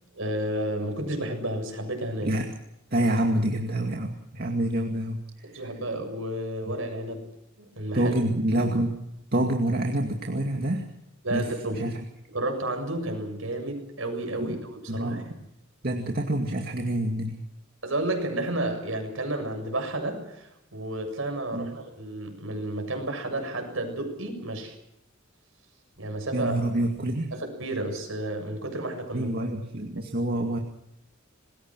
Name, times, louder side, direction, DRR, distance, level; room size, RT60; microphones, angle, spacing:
voice 1, 0.1-2.3 5.4-7.3 7.6-8.1 11.2-11.9 12.3-15.2 17.8-24.8 26.0-26.6 27.3-29.3, right 1 dB, 65° right, 5 dB, 7.2 m, -31 dB
voice 2, 2.9-5.2 7.9-9.0 9.3-10.9 11.3-12.0 14.4-14.5 14.9-15.4 15.8-17.4 21.5-21.7 26.3-27.3 29.1-30.6, right 1 dB, 50° right, 2 dB, 2.3 m, -27 dB
27.0 x 21.0 x 6.2 m, 0.82 s
head